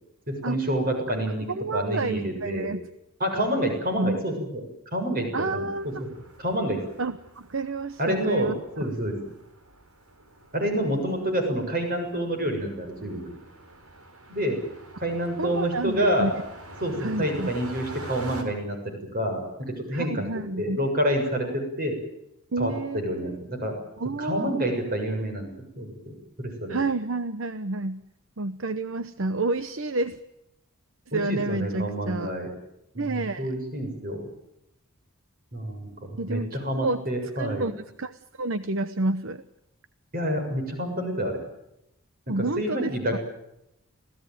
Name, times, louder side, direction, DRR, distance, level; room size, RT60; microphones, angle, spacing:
voice 1, 0.3-1.5 1.7-2.7 3.2-4.6 4.9-6.1 6.4-6.8 8.0-9.1 10.5-13.4 14.3-14.6 15.0-16.3 16.8-20.2 20.6-22.0 22.6-23.8 24.2-25.5 25.8-26.8 31.1-32.5 32.9-34.3 35.5-37.7 40.1-41.4 42.6-43.2, equal, 40° right, 4 dB, 7.1 m, -28 dB
voice 2, 1.5-2.8 4.0-4.2 5.3-6.0 7.0-8.6 15.4-16.3 17.0-17.5 19.9-20.8 22.5-23.4 24.0-24.6 26.7-28.0 28.4-30.2 31.1-32.3 33.0-33.5 36.2-37.1 37.4-39.4 42.3-43.2, right 2 dB, 60° right, 12 dB, 0.9 m, -29 dB
sound 1, 5.7-18.4, right 1 dB, 85° right, 4.7 m, -45 dB
27.0 x 17.5 x 9.3 m, 0.85 s
head